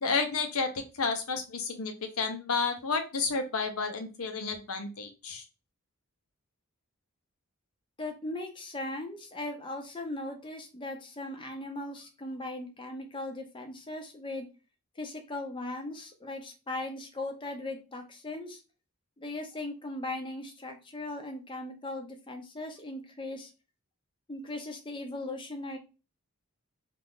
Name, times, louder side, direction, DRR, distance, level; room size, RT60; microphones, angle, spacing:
voice 1, 0.0-5.4, left 4 dB, 75° left, 6 dB, 0.8 m, -31 dB
voice 2, 8.0-14.4 15.0-18.6 19.2-23.5 24.3-25.8, left 2 dB, 20° left, 4 dB, 0.6 m, -38 dB
2.8 x 2.5 x 3.6 m, 0.30 s
head